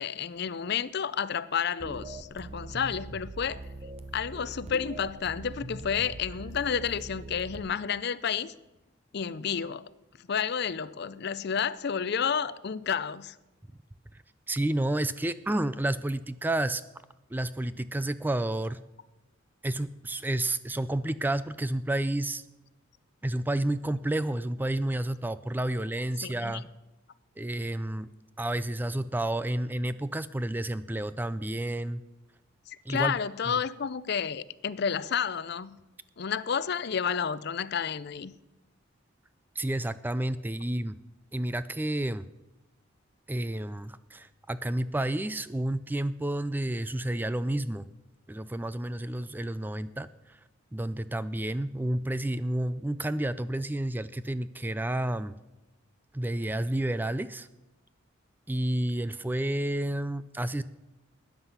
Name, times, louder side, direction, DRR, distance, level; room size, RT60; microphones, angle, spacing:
voice 1, 0.0-3.6 4.1-8.5 9.1-9.9 10.3-13.3 26.2-26.6 32.7-35.8 36.2-38.4, left 7 dB, 55° left, 0.5 m, -31 dB
sound 1, 1.8-7.6, right 2 dB, 30° right, 0.8 m, -42 dB
voice 2, 14.5-16.8 17.3-18.8 19.6-22.4 23.2-26.6 27.4-28.1 28.4-32.0 32.9-33.2 39.6-41.0 41.3-42.3 43.3-47.9 48.3-50.4 50.7-55.4 56.1-57.5 58.5-60.6, right 1 dB, 10° right, 0.3 m, -30 dB
13.5 x 9.7 x 5.7 m
head